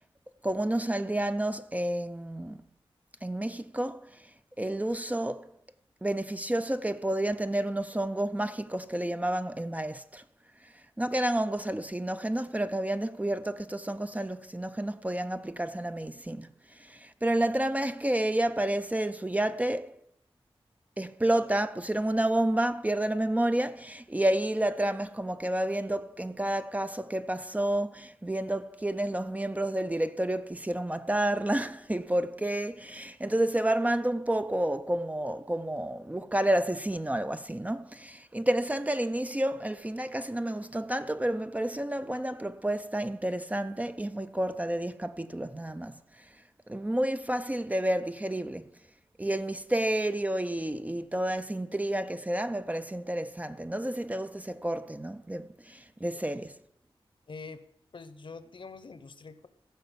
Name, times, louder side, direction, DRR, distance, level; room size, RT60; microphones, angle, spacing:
voice 1, 0.4-2.6 3.2-4.2 4.6-5.5 6.0-10.2 11.0-19.9 21.0-46.2 46.7-48.7 49.2-56.6, right 1 dB, 15° right, 0.5 m, -30 dB
voice 2, 57.3-57.6 57.9-59.5, left 4 dB, 55° left, 1.0 m, -45 dB
15.0 x 5.7 x 7.4 m
wide cardioid pair, 80°, 10 cm